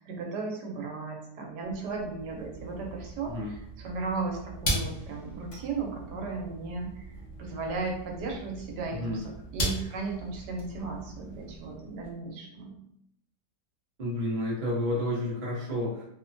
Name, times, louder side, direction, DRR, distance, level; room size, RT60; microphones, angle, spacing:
voice 1, 0.0-12.8, right 4 dB, 80° right, 0 dB, 1.3 m, -36 dB
sound 1, 1.7-12.1, equal, 50° left, 0.9 m, -38 dB
voice 2, 8.9-9.2 14.0-16.1, left 1 dB, 35° right, -5 dB, 0.8 m, -30 dB
3.1 x 2.1 x 2.6 m, 0.74 s
omnidirectional pair, 1.8 m